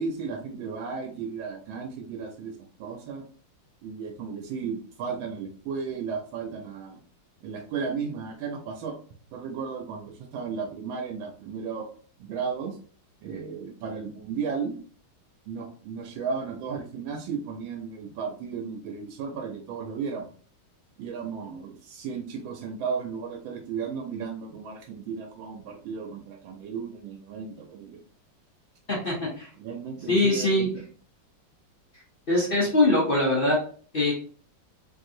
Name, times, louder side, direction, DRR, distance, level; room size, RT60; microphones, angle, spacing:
voice 1, 0.0-3.2 3.8-7.0 7.4-8.9 9.3-11.9 12.2-12.8 13.2-14.8 15.5-20.3 21.0-28.0 29.6-30.9, right 5 dB, 90° right, 1 dB, 1.4 m, -34 dB
voice 2, 28.9-29.5 30.1-30.7 32.3-33.6 33.9-34.1, left 2 dB, 50° left, -5 dB, 0.7 m, -22 dB
3.2 x 2.7 x 2.5 m, 0.43 s
omnidirectional pair, 2.1 m